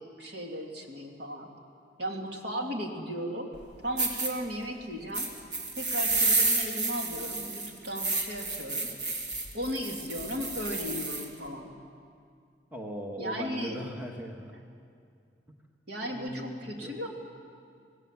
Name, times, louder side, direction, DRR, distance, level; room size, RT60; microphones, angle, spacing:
voice 1, 0.0-1.5 2.0-3.5 3.8-5.3 5.8-8.9 9.5-11.7 13.2-13.8 15.9-17.1, equal, 65° right, 1 dB, 2.7 m, -36 dB
sound 1, 3.5-3.6 4.0-4.3 5.1-11.3, right 3 dB, 80° right, 3.3 m, -30 dB
voice 2, 12.7-14.4 16.0-17.0, equal, 10° right, 1 dB, 1.6 m, -39 dB
26.0 x 18.5 x 7.5 m, 2.3 s
head